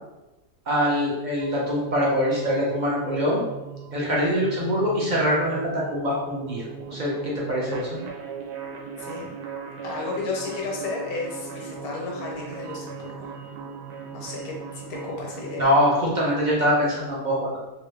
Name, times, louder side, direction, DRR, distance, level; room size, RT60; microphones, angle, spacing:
voice 1, 0.7-3.4 3.9-8.0 15.6-17.6, equal, 45° right, -5 dB, 0.6 m, -24 dB
sound 1, 1.4-15.6, right 6 dB, 90° right, 1.1 m, -38 dB
voice 2, 9.0-9.3 9.8-13.3 14.1-15.7, left 3 dB, 75° left, -1 dB, 1.2 m, -33 dB
2.8 x 2.6 x 3.2 m, 1.0 s
omnidirectional pair, 1.6 m